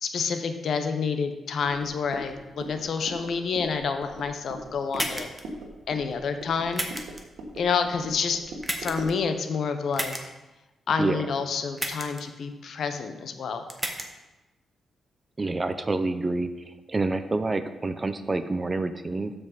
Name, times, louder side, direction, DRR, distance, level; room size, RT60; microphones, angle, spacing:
voice 1, 0.0-5.3 5.9-6.9 7.5-8.4 8.8-10.2 10.9-13.7, left 5 dB, 65° left, 7 dB, 0.9 m, -28 dB
sound 1, 1.6-9.2, right 1 dB, 75° right, 1.6 m, -41 dB
sound 2, 4.9-5.4 6.7-7.2 8.6-9.1 9.9-10.2 11.8-12.2 13.7-14.1, right 1 dB, 10° right, 1.2 m, -31 dB
voice 2, 15.4-16.5 16.9-19.3, right 3 dB, 25° right, 11 dB, 0.6 m, -27 dB
13.5 x 5.3 x 4.0 m, 1.1 s
cardioid pair, 90°, 0 cm